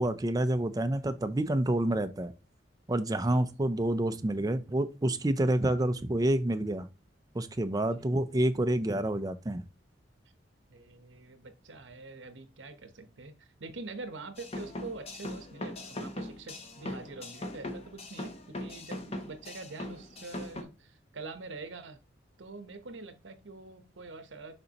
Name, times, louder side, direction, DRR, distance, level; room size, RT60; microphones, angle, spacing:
voice 1, 0.0-2.3 2.9-6.9 7.3-9.6, right 1 dB, 20° right, 0.5 m, -28 dB
voice 2, 10.7-22.0 22.4-24.5, right 3 dB, 75° right, 0.9 m, -45 dB
sound 1, 14.4-20.6, left 1 dB, 35° left, 0.9 m, -40 dB
6.6 x 5.4 x 2.9 m
head